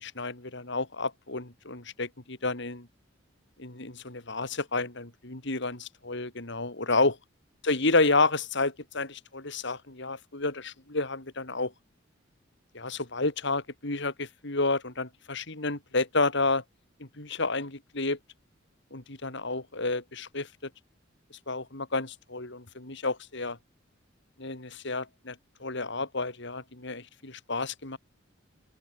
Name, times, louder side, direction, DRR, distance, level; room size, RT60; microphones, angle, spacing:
voice 1, 0.0-2.9 3.6-7.2 7.6-11.7 12.7-16.6 17.0-18.2 18.9-20.5 21.5-23.6 24.4-25.4 25.6-28.0, left 3 dB, 65° left, 3.6 m, -30 dB
open air
head